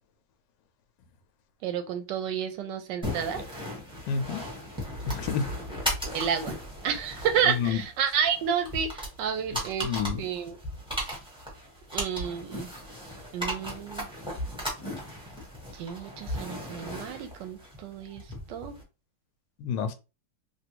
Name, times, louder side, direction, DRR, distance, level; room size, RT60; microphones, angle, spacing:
voice 1, 1.6-3.4 6.1-6.5 6.8-9.9 10.2-10.6 11.9-12.7 13.3-14.1 15.7-18.8, right 8 dB, 75° right, 1.1 m, -30 dB
sound 1, 3.0-18.8, equal, 5° right, 0.6 m, -37 dB
voice 2, 4.1-4.4 5.1-5.5 7.6-7.8 9.8-10.2 19.6-19.9, left 6 dB, 70° left, 1.1 m, -29 dB
3.3 x 2.5 x 2.9 m
omnidirectional pair, 2.3 m